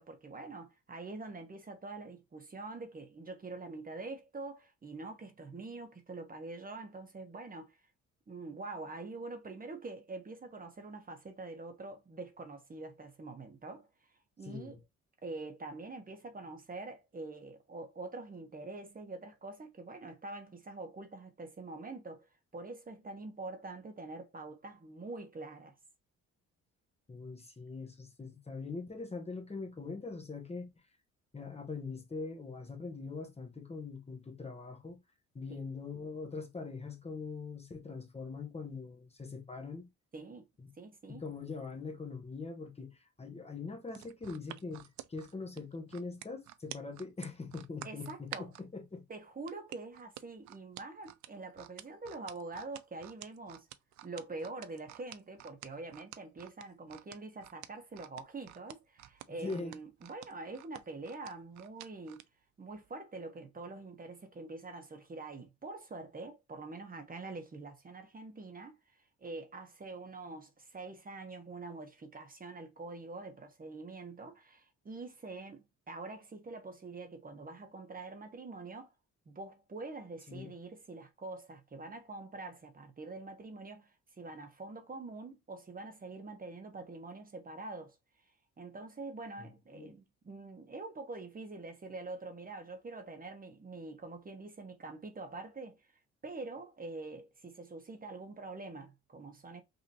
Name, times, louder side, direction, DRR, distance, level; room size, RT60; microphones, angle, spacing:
voice 1, 0.0-7.8 8.3-13.9 14.4-14.8 15.2-25.7 35.5-35.6 40.1-40.4 40.8-41.2 47.8-48.5 49.1-53.7 54.0-62.2 62.6-68.7 69.2-78.9 79.3-88.0 88.6-95.8 96.2-99.6, right 3 dB, 30° right, 1.0 m, -45 dB
voice 2, 27.1-30.7 31.3-35.0 35.3-39.9 40.6-40.7 41.1-49.0 59.3-59.7 80.3-80.5 89.4-89.9, left 4 dB, 20° left, 1.0 m, -42 dB
sound 1, 43.9-48.6 49.5-62.3 62.7-62.9, right 13 dB, 70° right, 0.5 m, -49 dB
5.2 x 2.8 x 2.9 m
cardioid pair, 90°, 30 cm